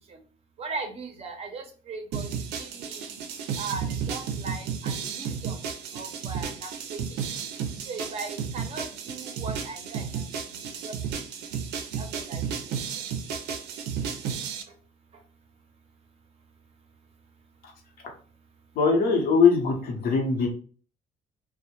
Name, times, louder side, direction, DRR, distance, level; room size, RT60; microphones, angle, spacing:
voice 1, 0.6-3.2 3.5-5.6 5.9-7.5 7.8-11.5 12.0-13.0 14.7-14.8 15.1-15.2, right 4 dB, 40° right, 4 dB, 0.5 m, -39 dB
sound 1, 2.1-14.6, right 7 dB, 85° right, 0.4 m, -33 dB
voice 2, 18.8-20.5, left 5 dB, 65° left, 1 dB, 0.8 m, -21 dB
2.1 x 2.0 x 2.9 m, 0.39 s
cardioid pair, 110°, 17 cm